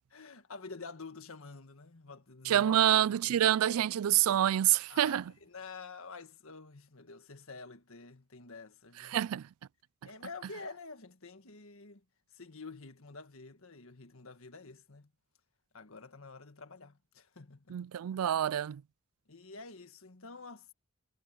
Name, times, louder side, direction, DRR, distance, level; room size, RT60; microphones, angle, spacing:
voice 1, 0.1-2.8 3.1-3.2 4.9-9.2 10.0-12.0 12.3-15.1 15.7-17.7 19.3-20.7, left 4 dB, 65° left, 1.7 m, -48 dB
voice 2, 2.5-5.3 9.0-9.5 17.7-18.8, right 11 dB, 80° right, 0.3 m, -27 dB
head